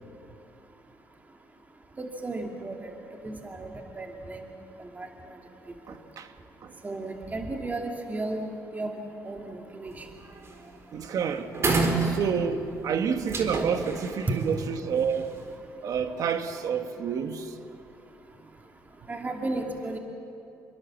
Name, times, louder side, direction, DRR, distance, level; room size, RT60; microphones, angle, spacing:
voice 1, 2.0-2.9 3.2-3.7 4.0-4.4 5.0-5.1 6.8-8.9 9.2-10.1 19.1-20.0, right 2 dB, 25° right, 2.6 m, -34 dB
voice 2, 5.9-6.3 6.6-6.8 10.9-11.5 12.0-15.3 15.8-17.6, right 7 dB, 60° right, 1.7 m, -29 dB
sound 1, 9.9-10.1 10.5-10.7 11.0-11.1 11.5-12.7 13.3-15.3, right 3 dB, 40° right, 4.1 m, -28 dB
26.5 x 23.0 x 7.5 m
supercardioid pair, 85°, 7 cm